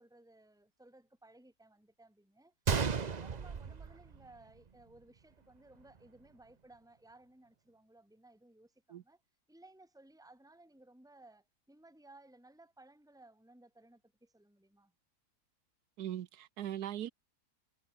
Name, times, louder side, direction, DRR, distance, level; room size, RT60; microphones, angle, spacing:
voice 1, 0.0-2.5 2.8-9.2 9.5-14.9, right 2 dB, ahead, 3.1 m, -60 dB
Gunshot gunfire, 2.7-4.7 5.0-5.1 5.7-6.0, right 6 dB, 35° right, 0.7 m, -34 dB
voice 2, 16.0-17.1, right 11 dB, 80° right, 1.4 m, -40 dB
omnidirectional pair, 1.7 m